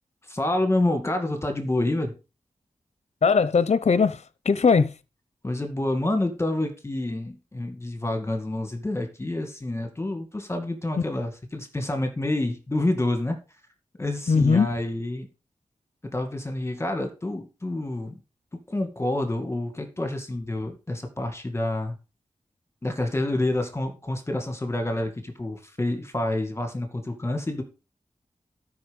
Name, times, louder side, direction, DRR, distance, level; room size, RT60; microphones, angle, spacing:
voice 1, 0.3-2.2 5.4-13.4 14.0-15.3 16.1-18.1 18.7-22.0 22.8-27.6, left 1 dB, 20° left, 2.2 m, -28 dB
voice 2, 3.2-4.9 14.3-14.7, left 5 dB, 55° left, 0.7 m, -20 dB
12.5 x 5.6 x 5.4 m
wide cardioid pair, 105°, 13 cm